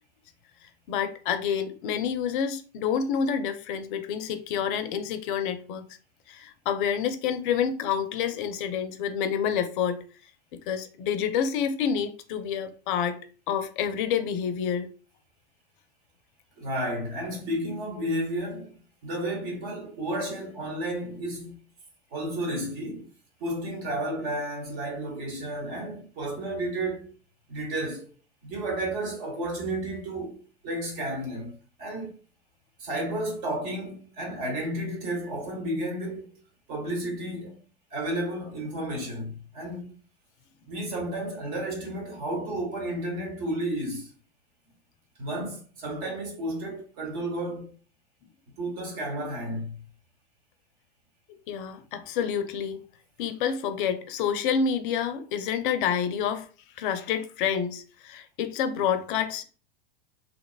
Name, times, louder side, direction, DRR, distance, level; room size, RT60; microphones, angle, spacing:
voice 1, 0.6-5.8 6.3-10.0 10.7-13.2 13.5-14.9 51.5-52.8 53.2-56.5 56.8-59.4, left 7 dB, 55° left, 0.4 m, -28 dB
voice 2, 16.6-18.8 19.0-21.6 22.1-23.1 23.4-27.1 27.5-28.1 28.4-30.4 30.6-32.1 32.8-36.2 36.7-37.6 37.9-39.9 40.7-44.1 45.2-47.7 48.6-49.8, right 1 dB, 50° right, 1.2 m, -32 dB
2.8 x 2.0 x 2.3 m
hypercardioid pair, 100°, 31 cm